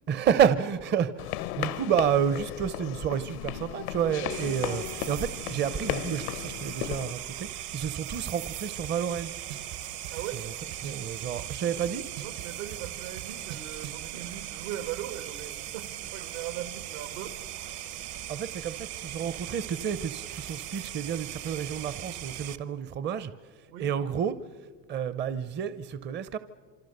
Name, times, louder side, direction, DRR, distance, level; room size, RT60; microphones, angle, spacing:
voice 1, 0.1-9.3 10.8-12.0 18.3-23.3 23.8-24.4 24.9-26.4, right 8 dB, 25° right, 14 dB, 0.7 m, -29 dB
sound 1, 1.2-7.1, left 15 dB, 90° left, 0.9 m, -35 dB
sound 2, 4.3-22.6, right 13 dB, 50° right, 1.0 m, -39 dB
sound 3, 8.8-8.9 9.2-11.6 11.8-14.1, right 13 dB, 65° right, 1.6 m, -42 dB
voice 2, 10.1-10.4 11.7-11.9 12.2-17.4 23.7-23.9, right 11 dB, 80° right, 9 dB, 2.5 m, -39 dB
27.5 x 25.0 x 6.7 m, 1.5 s
supercardioid pair, 125°, 41 cm